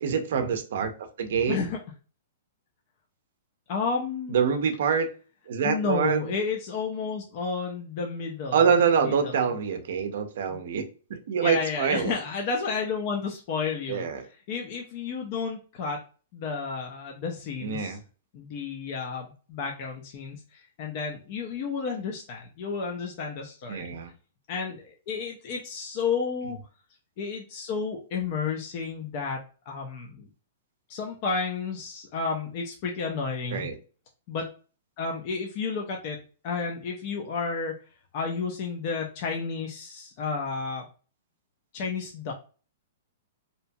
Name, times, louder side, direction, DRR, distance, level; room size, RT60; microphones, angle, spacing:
voice 1, 0.0-0.9 1.2-1.7 4.3-5.1 5.5-6.4 8.5-10.8 11.1-12.1 13.9-14.3 17.6-18.0 23.7-24.1 33.5-33.8, right 6 dB, 60° right, 7 dB, 0.5 m, -25 dB
voice 2, 1.5-1.8 3.7-4.5 5.6-8.6 9.0-9.5 10.5-10.6 11.4-14.1 14.5-16.0 16.3-18.0 18.3-24.0 24.5-26.6 27.2-30.3 30.9-33.7 34.3-34.5 35.0-36.2 36.4-37.7 38.1-40.9 41.7-42.3, left 5 dB, 35° left, 1 dB, 0.4 m, -31 dB
2.7 x 2.2 x 2.6 m, 0.37 s
hypercardioid pair, 170°, 0 cm